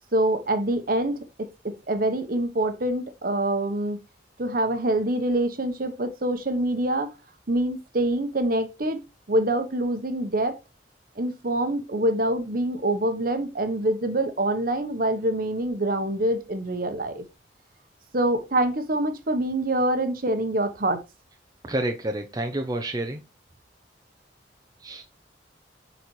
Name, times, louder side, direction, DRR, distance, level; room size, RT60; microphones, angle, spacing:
voice 1, 0.1-4.0 4.4-7.1 7.5-9.0 9.3-10.6 11.2-17.2 18.1-21.0, right 1 dB, 50° right, 1.0 m, -25 dB
voice 2, 21.6-23.2 24.8-25.0, right 1 dB, 20° right, 0.6 m, -29 dB
8.1 x 4.2 x 3.1 m
head